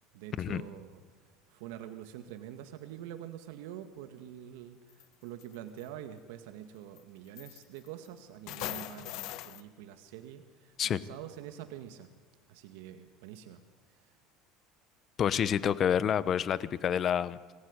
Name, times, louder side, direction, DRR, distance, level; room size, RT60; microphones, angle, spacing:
voice 1, 0.1-1.0 1.5-12.1 12.5-13.6 13.9-14.1, right 11 dB, 85° right, 8 dB, 2.0 m, -46 dB
sound 1, 4.9-5.0 5.4-5.8 7.0-7.1 7.4-8.1 8.5-9.6, left 15 dB, 55° left, 1.2 m, -40 dB
voice 2, 15.2-17.4, left 9 dB, 30° left, 17 dB, 0.9 m, -28 dB
27.0 x 19.5 x 9.8 m, 1.5 s
cardioid pair, 170°, 0 cm